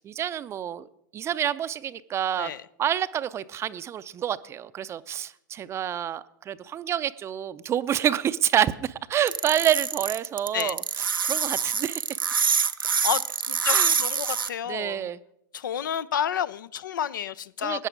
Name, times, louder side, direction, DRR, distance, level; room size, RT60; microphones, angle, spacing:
voice 1, 0.1-0.9 1.1-2.5 2.8-12.0 13.7-13.9 14.2-14.3 14.7-15.2 17.6-17.9, right 10 dB, 25° right, 15 dB, 0.5 m, -28 dB
sound 1, 9.3-14.5, right 6 dB, 85° right, 0.6 m, -25 dB
voice 2, 13.5-15.1 15.5-17.9, left 9 dB, 65° left, 18 dB, 0.4 m, -30 dB
13.5 x 9.0 x 5.1 m, 0.73 s
figure-of-eight pair, 95°, 11 cm